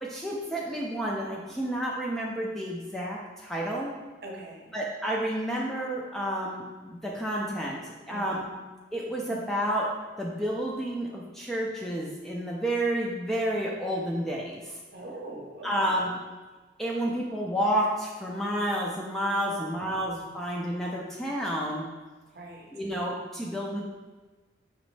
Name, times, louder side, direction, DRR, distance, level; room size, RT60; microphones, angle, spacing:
voice 1, 0.0-3.9 4.7-8.5 8.9-9.9 10.2-14.7 15.6-16.1 16.8-21.9 22.7-23.8, right 1 dB, ahead, -3 dB, 0.3 m, -30 dB
voice 2, 4.2-4.7 8.1-8.5 14.9-16.1 19.5-20.1 22.3-22.7, right 1 dB, 50° right, 0 dB, 0.7 m, -43 dB
5.0 x 3.0 x 3.2 m, 1.3 s
head